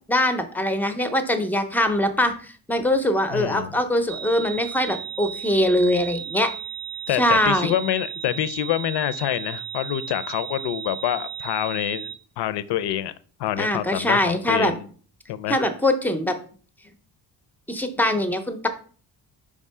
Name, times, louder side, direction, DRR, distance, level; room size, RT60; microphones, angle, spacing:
voice 1, 0.1-6.5 7.1-7.7 13.6-14.7 15.5-16.4 17.7-18.7, left 1 dB, 5° left, 8 dB, 0.5 m, -22 dB
voice 2, 3.3-3.8 7.1-13.1 13.4-14.9 15.3-15.6, left 12 dB, 85° left, 15 dB, 0.6 m, -26 dB
sound 1, 4.1-12.2, right 9 dB, 60° right, 0.5 m, -35 dB
5.1 x 3.6 x 5.4 m, 0.43 s
cardioid pair, 165°, 39 cm